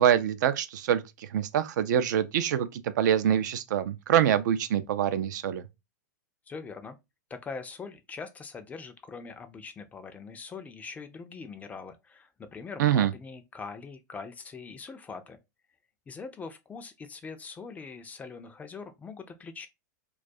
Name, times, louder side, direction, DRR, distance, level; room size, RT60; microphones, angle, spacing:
voice 1, 0.0-5.7 12.8-13.1, right 10 dB, 70° right, 0.4 m, -25 dB
voice 2, 6.5-7.0 7.3-15.4 16.1-19.7, left 5 dB, 15° left, 0.3 m, -42 dB
2.3 x 2.3 x 2.5 m
hypercardioid pair, 120°, 10 cm